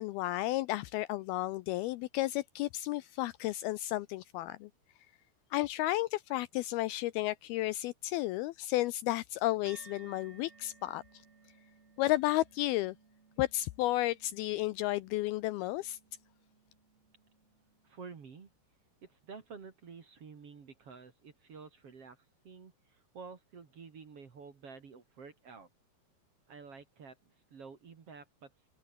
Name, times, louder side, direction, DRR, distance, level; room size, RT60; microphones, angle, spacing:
voice 1, 0.0-4.7 5.5-11.0 12.0-13.0 13.4-16.0, left 17 dB, 80° left, 2.3 m, -32 dB
sound 1, 9.7-18.3, right 4 dB, 65° right, 8.6 m, -61 dB
voice 2, 17.8-18.5 19.0-22.2 22.4-25.7 26.5-27.2 27.5-28.5, right 5 dB, 40° right, 2.8 m, -50 dB
omnidirectional pair, 4.8 m